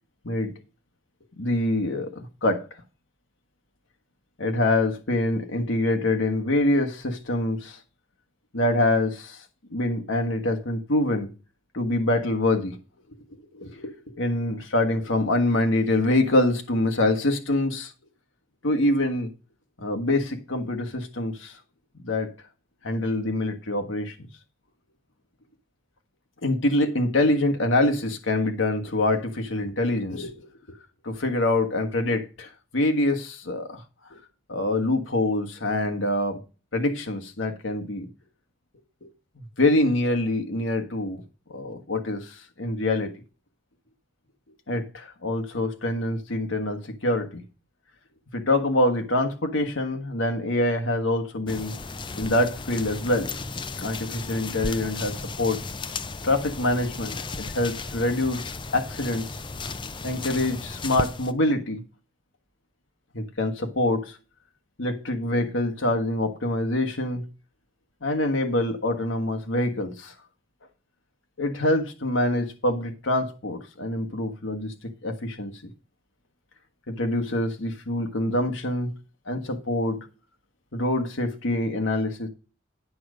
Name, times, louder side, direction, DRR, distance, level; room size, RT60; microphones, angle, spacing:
voice 1, 1.4-2.6 4.4-7.8 8.5-9.4 9.7-11.3 11.7-12.8 13.3-17.9 18.6-19.3 19.8-21.6 21.9-22.3 22.8-24.3 26.4-30.8 31.0-33.8 34.1-34.2 34.5-36.4 36.7-38.1 39.0-39.1 39.4-41.2 41.5-43.1 44.7-47.4 48.3-51.7 52.2-53.3 53.8-55.6 56.2-59.3 60.0-61.8 63.1-64.2 64.8-67.2 68.0-70.1 71.4-75.6 76.9-78.9 79.3-80.0 80.7-82.3, left 1 dB, 70° left, 1.5 m, -25 dB
sound 1, 51.5-61.3, left 3 dB, 25° left, 0.5 m, -35 dB
9.0 x 6.4 x 5.0 m
head